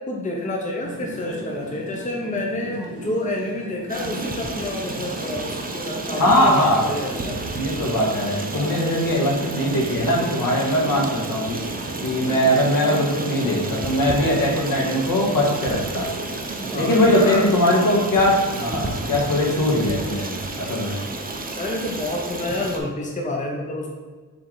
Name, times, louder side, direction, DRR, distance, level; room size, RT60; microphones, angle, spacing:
voice 1, 0.1-7.4 8.5-9.0 12.8-12.9 16.7-17.5 21.6-23.9, left 2 dB, 20° left, -1 dB, 0.8 m, -28 dB
sound 1, 0.8-19.5, right 2 dB, 55° right, 1.3 m, -36 dB
Stream, 3.9-22.8, right 2 dB, 25° right, 0.7 m, -32 dB
voice 2, 6.2-6.9 7.5-11.6 12.0-16.1 16.8-21.0, left 1 dB, 70° left, -3 dB, 1.7 m, -21 dB
7.0 x 3.4 x 4.0 m, 1.4 s
wide cardioid pair, 120°, 35 cm